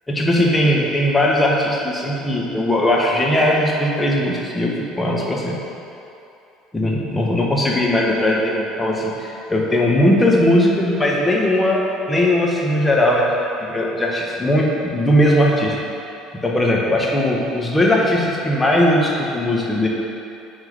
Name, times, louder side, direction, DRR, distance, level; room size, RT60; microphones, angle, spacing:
voice 1, 0.1-5.6 6.7-11.8 12.1-15.7 16.4-19.9, left 1 dB, 15° left, -3 dB, 1.5 m, -18 dB
9.6 x 4.0 x 5.4 m, 2.8 s
figure-of-eight pair, 60°, 0 cm